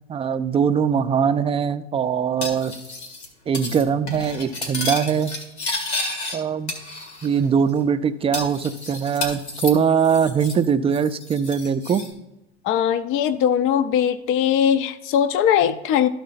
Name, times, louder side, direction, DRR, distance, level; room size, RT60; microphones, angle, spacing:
voice 1, 0.1-2.7 3.5-5.3 6.3-6.7 7.2-12.0, right 7 dB, 20° right, 11 dB, 0.4 m, -21 dB
Cutlery silverware, 2.4-3.3 3.5-3.8 4.1-6.4 6.7-7.4 7.7-7.8 8.3-10.7 10.9-12.1, left 2 dB, 90° left, 1.9 m, -31 dB
voice 2, 12.6-16.1, left 9 dB, 40° left, 11 dB, 0.5 m, -20 dB
12.5 x 4.2 x 3.9 m, 0.95 s
hypercardioid pair, 85°, 32 cm